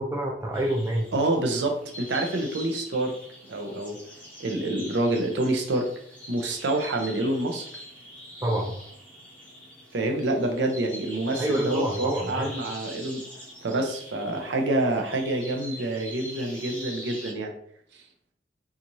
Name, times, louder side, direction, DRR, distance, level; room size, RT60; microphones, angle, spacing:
voice 1, 0.0-1.1 8.4-8.7 11.4-12.5, right 1 dB, 15° right, 0 dB, 0.4 m, -27 dB
sound 1, 0.5-17.3, equal, 10° left, 0.8 m, -43 dB
voice 2, 1.1-3.1 3.5-4.0 4.4-5.9 6.3-7.6 9.9-13.2 13.6-17.5, right 2 dB, 85° right, 3 dB, 0.6 m, -27 dB
2.6 x 2.4 x 2.9 m, 0.65 s
head